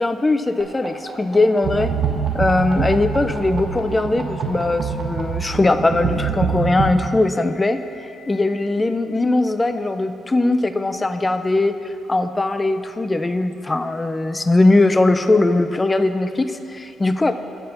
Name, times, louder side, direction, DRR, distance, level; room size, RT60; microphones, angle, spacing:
voice 1, 0.0-1.9 2.3-17.3, left 2 dB, 20° left, 10 dB, 0.4 m, -20 dB
sound 1, 0.6-5.2 6.4-8.6, right 4 dB, 40° right, 1.4 m, -38 dB
sound 2, 1.6-6.9, right 6 dB, 70° right, 0.9 m, -25 dB
8.9 x 5.1 x 5.7 m, 2.7 s
cardioid pair, 90°, 0 cm